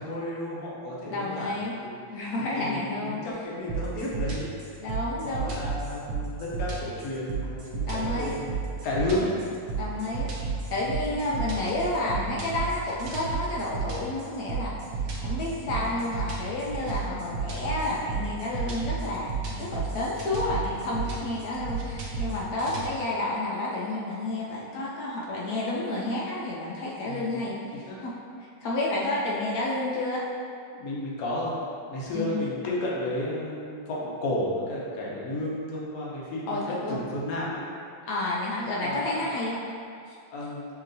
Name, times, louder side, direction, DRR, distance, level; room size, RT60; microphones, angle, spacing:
voice 1, 0.0-1.9 2.6-4.7 5.2-8.5 8.8-9.3 10.7-10.9 15.5-15.9 27.0-27.5 27.9-28.0 30.7-31.6 31.9-37.6 38.8-39.3 40.3-40.7, left 1 dB, 55° left, -5 dB, 1.1 m, -32 dB
voice 2, 1.1-1.7 2.1-3.2 4.8-5.5 7.9-8.4 9.8-14.8 15.2-27.6 28.0-28.1 28.4-30.3 32.1-32.4 36.5-37.0 38.1-39.6 40.1-40.2, left 2 dB, 75° left, -5 dB, 0.8 m, -30 dB
sound 1, 3.7-22.9, right 5 dB, 65° right, 1.1 m, -32 dB
7.0 x 2.9 x 2.6 m, 2.4 s
omnidirectional pair, 2.2 m